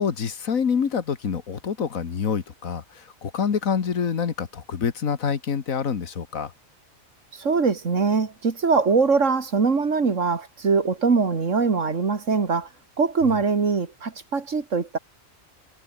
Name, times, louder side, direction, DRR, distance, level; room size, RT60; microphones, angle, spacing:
voice 1, 0.0-6.5 13.3-13.4, left 6 dB, 75° left, 1.9 m, -26 dB
voice 2, 7.3-12.7 13.0-15.0, right 4 dB, 65° right, 2.4 m, -22 dB
omnidirectional pair, 1.4 m